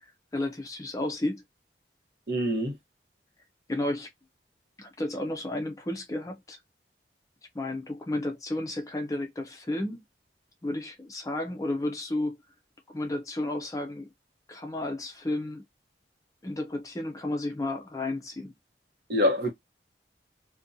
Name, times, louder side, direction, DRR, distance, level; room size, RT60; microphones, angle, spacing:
voice 1, 0.3-1.4 3.7-4.1 4.8-6.6 7.5-10.0 10.6-12.4 12.9-14.1 14.5-15.6 16.4-18.5, left 1 dB, 20° left, 0.4 m, -32 dB
voice 2, 2.3-2.7 19.1-19.5, left 1 dB, 60° right, 0.8 m, -25 dB
2.5 x 2.2 x 2.6 m
head